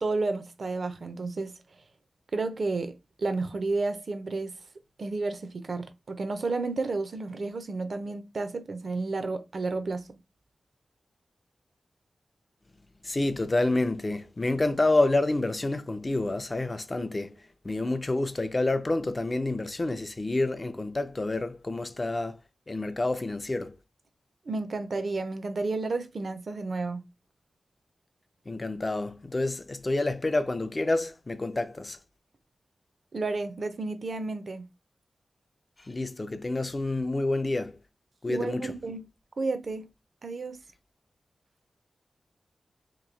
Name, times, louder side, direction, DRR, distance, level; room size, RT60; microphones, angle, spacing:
voice 1, 0.0-1.5 2.3-2.9 3.2-4.5 5.0-10.2 24.5-27.0 33.1-34.7 38.3-39.0 39.4-39.9 40.2-40.6, right 3 dB, 55° right, 0.6 m, -31 dB
voice 2, 13.0-22.4 22.7-23.8 28.5-32.0 35.8-37.8 38.2-38.8, left 2 dB, 25° left, 0.4 m, -28 dB
3.0 x 2.7 x 3.9 m
wide cardioid pair, 110°, 0 cm